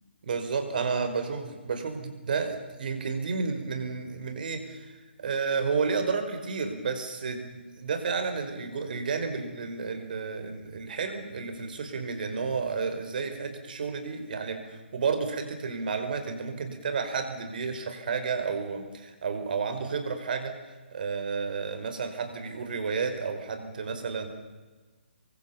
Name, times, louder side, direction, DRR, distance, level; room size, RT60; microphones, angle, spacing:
voice 1, 0.2-20.5 20.9-24.3, right 5 dB, 50° right, 7 dB, 5.3 m, -31 dB
28.0 x 24.0 x 7.2 m, 1.3 s
figure-of-eight pair, 140°, 6 cm